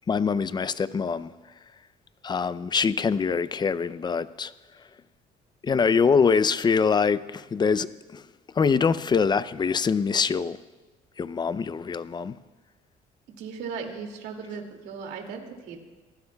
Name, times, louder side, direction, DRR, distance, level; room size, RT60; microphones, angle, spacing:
voice 1, 0.1-1.3 2.2-4.5 5.6-8.3 8.6-10.6 11.2-12.4, left 5 dB, 25° left, 0.5 m, -24 dB
voice 2, 13.3-15.8, right 5 dB, 80° right, 2.4 m, -37 dB
28.0 x 15.0 x 2.3 m
cardioid pair, 110°, 17 cm